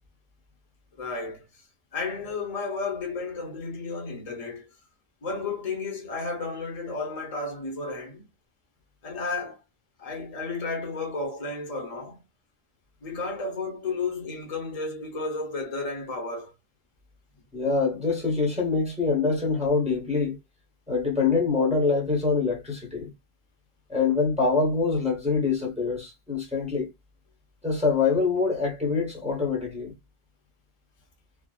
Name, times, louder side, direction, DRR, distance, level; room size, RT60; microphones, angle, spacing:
voice 1, 1.0-1.6 1.9-4.7 5.2-8.2 9.0-9.6 10.0-12.2 13.0-16.5, left 3 dB, 40° left, 1.0 m, -32 dB
voice 2, 17.5-20.4 20.9-23.1 23.9-26.9 27.6-29.9, left 4 dB, 5° right, 0.9 m, -25 dB
3.3 x 2.0 x 2.3 m
omnidirectional pair, 1.1 m